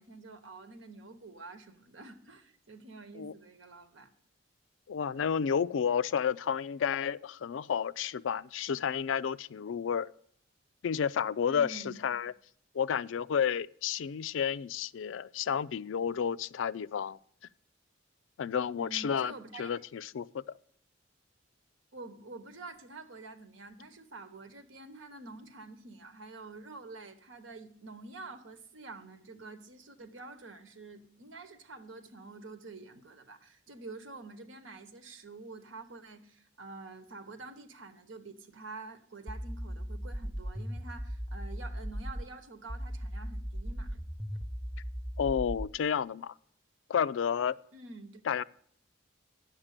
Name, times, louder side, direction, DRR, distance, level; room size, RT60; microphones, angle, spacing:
voice 1, 0.0-4.1 5.1-5.3 11.4-12.0 18.8-19.8 21.9-44.0 47.7-48.2, right 3 dB, 85° right, 1.2 m, -48 dB
voice 2, 4.9-10.1 10.8-12.3 12.7-17.2 18.4-19.3 19.6-20.4 45.2-46.3 46.9-47.6 48.3-48.4, left 7 dB, 80° left, 0.4 m, -31 dB
sound 1, 39.3-42.3 42.7-45.7, equal, 10° right, 0.7 m, -37 dB
9.7 x 7.4 x 6.6 m
head